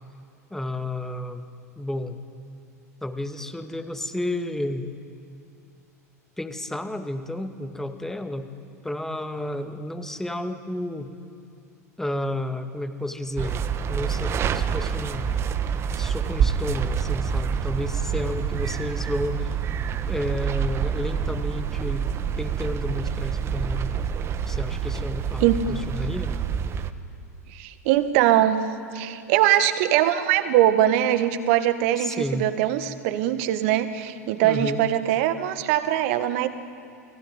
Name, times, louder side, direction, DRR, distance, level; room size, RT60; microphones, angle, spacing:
voice 1, 0.5-1.4 1.8-2.2 3.0-4.9 6.4-8.5 8.8-11.1 12.0-15.3 16.0-19.5 20.1-22.1 22.4-23.9 24.5-26.4 32.0-32.5 34.4-34.8, left 1 dB, 5° left, 7 dB, 2.0 m, -31 dB
sound 1, 13.4-26.9, right 7 dB, 30° right, 1.4 m, -27 dB
voice 2, 27.5-28.6 28.9-36.5, right 12 dB, 50° right, 11 dB, 1.7 m, -22 dB
29.5 x 20.5 x 9.1 m, 2.5 s
figure-of-eight pair, 80°, 9 cm